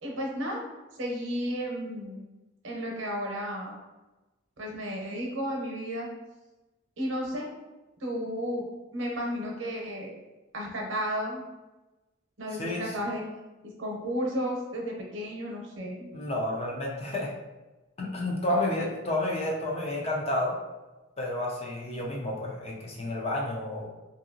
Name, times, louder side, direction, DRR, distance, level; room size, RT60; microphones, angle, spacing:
voice 1, 0.0-0.6 0.9-2.2 2.6-3.8 4.6-6.1 7.0-7.5 8.0-8.7 8.9-10.1 10.5-11.4 12.4-13.2 13.6-16.1 18.5-18.9, equal, 80° right, -1 dB, 0.7 m, -33 dB
voice 2, 16.1-17.3 18.0-20.5 21.2-23.9, left 1 dB, 30° left, -2 dB, 0.5 m, -30 dB
2.7 x 2.6 x 2.6 m, 1.1 s
head